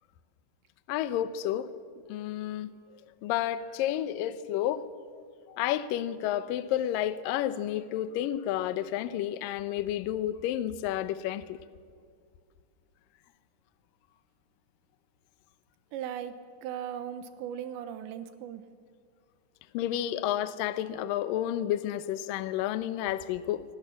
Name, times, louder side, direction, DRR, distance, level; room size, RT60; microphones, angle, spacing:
voice 1, 0.9-1.7 2.1-4.9 5.1-5.2 5.5-11.6 19.7-23.6, left 12 dB, 75° left, 13 dB, 2.1 m, -31 dB
voice 2, 15.9-16.3 16.6-18.6, right 9 dB, 85° right, 10 dB, 3.4 m, -37 dB
25.0 x 23.0 x 7.3 m, 2.1 s
omnidirectional pair, 5.0 m